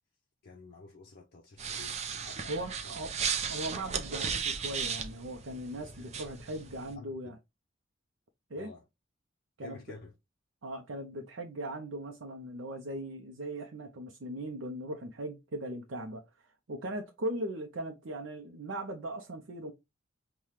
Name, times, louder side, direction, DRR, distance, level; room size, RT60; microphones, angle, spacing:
voice 1, 0.4-2.5 2.8-2.9 5.7-6.3 6.9-7.3 8.6-8.8 9.6-10.1, left 4 dB, 55° left, 0.5 m, -51 dB
sound 1, 1.6-6.9, right 6 dB, 35° right, 0.4 m, -36 dB
voice 2, 2.5-3.2 3.5-7.4 8.5-8.7 9.6-9.8 10.6-19.7, right 1 dB, 75° right, 0.6 m, -39 dB
5.6 x 2.3 x 3.1 m
head